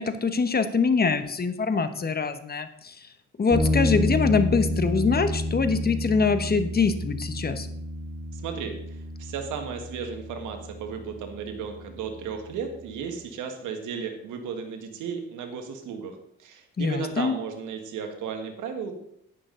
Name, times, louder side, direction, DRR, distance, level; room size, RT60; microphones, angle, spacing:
voice 1, 0.0-3.1 3.4-7.7 16.8-17.4, left 4 dB, 30° left, 9 dB, 1.2 m, -24 dB
sound 1, 3.5-13.0, left 1 dB, 10° left, 4.9 m, -30 dB
voice 2, 8.3-18.9, right 6 dB, 85° right, 4 dB, 1.6 m, -35 dB
11.0 x 9.2 x 3.9 m, 0.71 s
cardioid pair, 90°, 30 cm